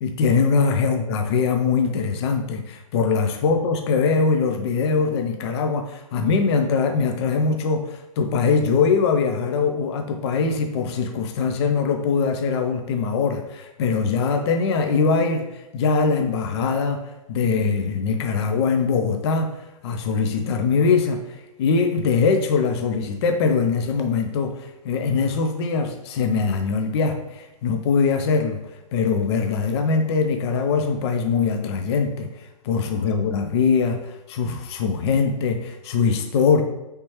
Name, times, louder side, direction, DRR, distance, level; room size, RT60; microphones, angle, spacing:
voice 1, 0.0-17.0 17.3-19.5 19.8-21.2 21.6-36.6, left 5 dB, 50° left, 5 dB, 0.4 m, -22 dB
3.2 x 3.1 x 2.8 m, 1.0 s
hypercardioid pair, 135°, 18 cm